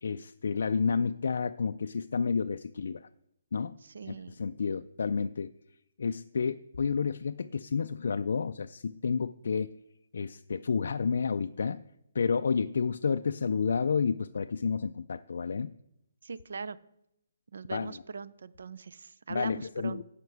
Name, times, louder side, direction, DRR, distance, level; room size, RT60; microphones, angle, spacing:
voice 1, 0.0-3.1 3.5-3.8 4.1-5.5 6.0-9.7 10.1-11.8 12.1-15.7 17.7-17.9 19.3-20.0, left 5 dB, 55° left, 9 dB, 0.3 m, -30 dB
voice 2, 3.8-4.3 16.2-16.8 17.5-20.0, right 5 dB, 60° right, 16 dB, 0.5 m, -41 dB
15.5 x 5.8 x 4.7 m, 0.79 s
hypercardioid pair, 180°, 0 cm